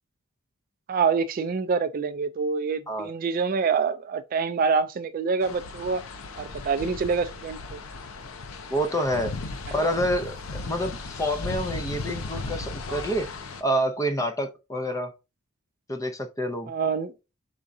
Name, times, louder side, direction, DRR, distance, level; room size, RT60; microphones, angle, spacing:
voice 1, 0.9-6.0 6.4-7.8 9.8-9.9 16.7-17.1, right 5 dB, 40° right, 0.3 m, -26 dB
sound 1, 5.4-13.6, left 3 dB, 90° left, 0.7 m, -36 dB
voice 2, 8.7-9.3 9.7-13.3 13.6-15.1 15.9-16.7, equal, 15° left, 0.5 m, -27 dB
5.0 x 3.6 x 2.6 m
head